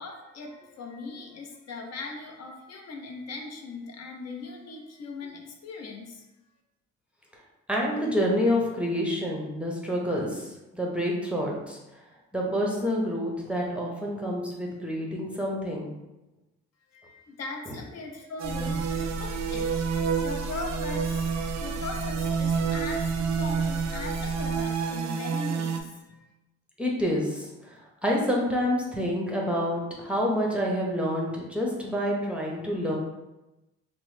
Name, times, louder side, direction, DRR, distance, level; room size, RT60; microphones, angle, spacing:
voice 1, 0.0-6.3 16.9-26.0, left 3 dB, 60° left, 1 dB, 0.6 m, -39 dB
voice 2, 7.7-11.8 12.3-15.9 18.6-18.7 26.8-33.0, equal, 5° right, -3 dB, 0.6 m, -28 dB
sound 1, 18.4-24.6, equal, 80° left, 1.1 m, -36 dB
sound 2, 18.4-25.8, right 6 dB, 65° right, 0.4 m, -29 dB
3.0 x 2.1 x 3.1 m, 1.0 s
cardioid pair, 90°, 30 cm